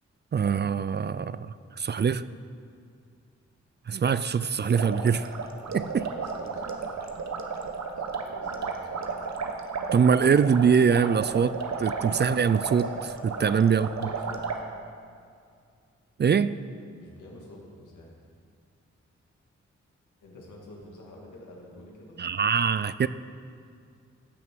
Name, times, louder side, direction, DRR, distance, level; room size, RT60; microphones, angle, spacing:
voice 1, 0.3-2.2 3.9-5.4 5.7-6.1 9.9-11.5 11.8-14.1 16.2-16.6 22.2-23.1, right 6 dB, 35° right, 15 dB, 0.4 m, -23 dB
sound 1, 4.7-14.6, right 5 dB, 65° right, 1.1 m, -33 dB
voice 2, 5.5-6.8 8.0-9.1 13.4-13.6 14.0-14.4 17.0-18.1 20.2-22.2, left 1 dB, 90° left, -2 dB, 2.0 m, -47 dB
15.0 x 6.0 x 4.6 m, 2.3 s
supercardioid pair, 40°, 29 cm